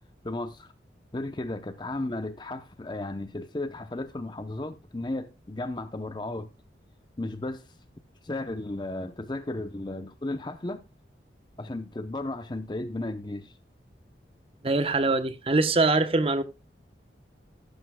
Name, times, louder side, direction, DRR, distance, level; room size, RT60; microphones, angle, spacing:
voice 1, 0.2-0.7 1.1-6.5 7.2-7.7 8.2-10.8 11.6-13.5, left 2 dB, 25° left, 0.6 m, -34 dB
voice 2, 14.6-16.4, right 3 dB, 30° right, 0.9 m, -23 dB
14.0 x 12.0 x 2.2 m
head